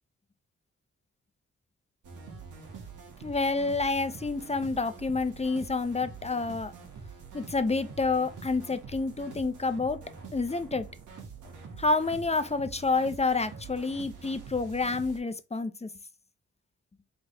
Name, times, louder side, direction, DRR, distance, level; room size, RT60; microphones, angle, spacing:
sound 1, 2.0-15.2, right 5 dB, 85° right, 1.4 m, -45 dB
voice 1, 3.2-6.7 7.3-10.0 10.3-10.9 11.8-15.9, left 3 dB, 20° left, 0.7 m, -28 dB
4.0 x 3.4 x 3.8 m
cardioid pair, 55°, 30 cm